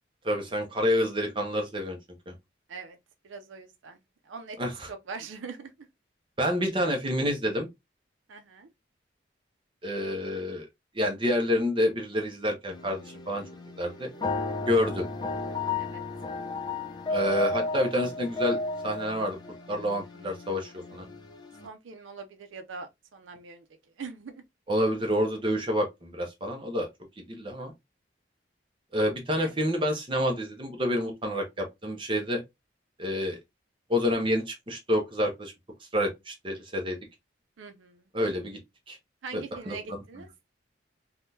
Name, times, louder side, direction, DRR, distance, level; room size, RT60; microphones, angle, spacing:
voice 1, 0.2-2.0 2.3-2.4 4.6-4.9 6.4-7.7 9.8-10.7 11.0-13.4 13.8-14.1 14.7-15.1 17.1-18.6 18.8-19.4 19.7-21.1 24.7-26.9 27.2-27.7 28.9-32.4 33.0-33.4 33.9-35.5 35.9-37.0 38.1-38.6 38.9-39.0 39.3-40.0, equal, 25° right, 0.7 m, -28 dB
voice 2, 3.2-4.0 4.3-4.6 4.9-5.7 8.3-8.7 15.8-16.0 21.6-23.6 24.0-24.4 29.4-29.5 37.6-38.0 39.2-40.3, right 4 dB, 85° right, 0.5 m, -42 dB
sound 1, 12.7-21.7, left 3 dB, 20° left, 0.5 m, -34 dB
3.5 x 2.2 x 2.6 m
head